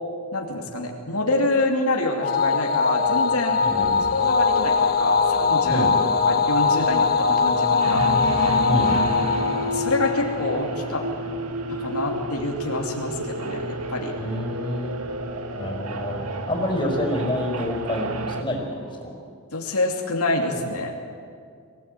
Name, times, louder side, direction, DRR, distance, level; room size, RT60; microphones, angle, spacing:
voice 1, 0.3-3.9 4.1-5.9 6.3-8.0 9.7-11.1 11.7-14.1 19.5-20.9, left 2 dB, 85° left, 1 dB, 2.8 m, -26 dB
sound 1, 2.2-10.8, left 5 dB, 45° left, 1.3 m, -21 dB
sound 2, 3.0-18.4, right 1 dB, 85° right, 1.6 m, -32 dB
voice 2, 3.6-4.0 5.7-5.9 8.7-8.9 14.2-15.0 15.6-16.2 16.5-19.1, left 1 dB, 20° left, 0 dB, 5.1 m, -28 dB
23.5 x 17.5 x 9.3 m, 2.3 s
head